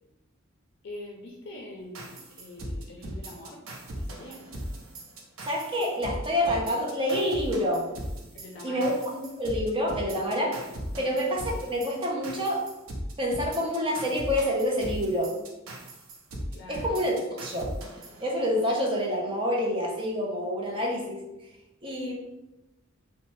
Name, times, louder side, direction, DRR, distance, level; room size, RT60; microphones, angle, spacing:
voice 1, 0.8-3.6 4.0-4.5 8.3-8.9 10.9-11.1 16.5-16.9, left 2 dB, 60° left, -1 dB, 0.4 m, -44 dB
sound 1, 1.9-18.8, equal, 70° right, 0.6 m, -39 dB
voice 2, 5.5-7.9 8.6-10.7 11.0-12.7 13.2-15.3 16.7-17.1 17.4-17.7 18.2-21.3 21.8-22.2, equal, 25° right, -2 dB, 0.6 m, -27 dB
2.7 x 2.1 x 3.1 m, 0.97 s
head